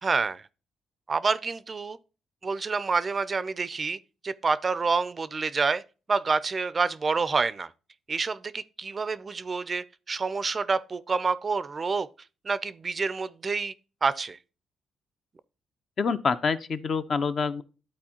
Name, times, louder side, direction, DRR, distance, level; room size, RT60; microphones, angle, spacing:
voice 1, 0.0-0.4 1.1-2.0 2.4-5.8 6.1-7.7 8.1-12.1 12.4-13.7 14.0-14.4, right 4 dB, 35° right, 0.4 m, -28 dB
voice 2, 16.0-17.6, left 5 dB, 45° left, 0.5 m, -26 dB
12.0 x 4.2 x 2.9 m
cardioid pair, 90°, 0 cm